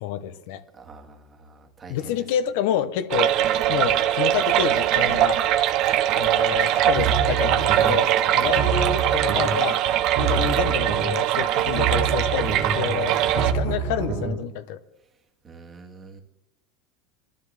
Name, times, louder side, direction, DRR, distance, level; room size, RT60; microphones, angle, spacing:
voice 1, 0.0-0.6 1.9-3.4 3.7-5.4 6.2-9.8 10.2-14.8, left 10 dB, 70° left, 0.9 m, -28 dB
voice 2, 0.7-2.3 8.4-8.6 15.4-16.2, right 4 dB, 20° right, 1.8 m, -44 dB
sound 1, 3.1-13.5, right 12 dB, 50° right, 0.8 m, -22 dB
sound 2, 6.8-8.1 8.4-9.7 10.0-11.3 11.6-14.4, right 5 dB, 65° right, 2.8 m, -27 dB
21.5 x 13.0 x 3.5 m
supercardioid pair, 150°, 0 cm